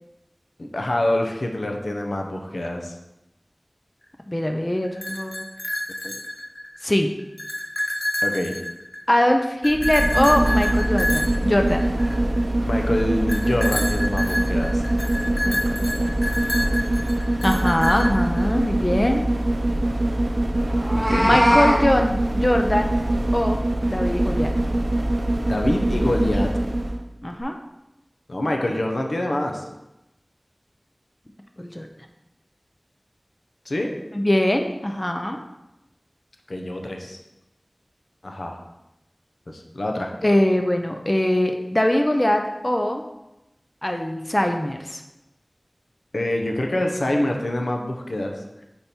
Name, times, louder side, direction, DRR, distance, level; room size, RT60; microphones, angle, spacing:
voice 1, 0.6-3.0 8.2-8.5 12.6-14.8 20.9-21.4 25.4-26.5 28.3-29.6 33.7-33.9 36.5-37.2 38.2-38.6 39.5-40.1 46.1-48.4, left 1 dB, 80° left, 2 dB, 0.7 m, -25 dB
voice 2, 4.3-5.4 6.0-6.1 6.8-7.1 9.1-11.9 15.4-16.4 17.4-19.2 21.2-22.9 23.3-24.5 27.2-27.6 31.6-31.9 34.1-35.4 40.2-43.0 43.8-45.0, left 1 dB, 30° left, 4 dB, 0.5 m, -22 dB
sound 1, 4.8-6.8 7.2-9.1 9.6-12.4 13.3-18.4, left 1 dB, 55° left, 1.0 m, -28 dB
sound 2, 9.6-27.0 27.4-27.5, right 1 dB, 65° right, 0.4 m, -23 dB
Meow, 20.7-21.8, equal, 15° right, 1.5 m, -20 dB
5.2 x 4.5 x 4.2 m, 0.94 s
wide cardioid pair, 50°, 0 cm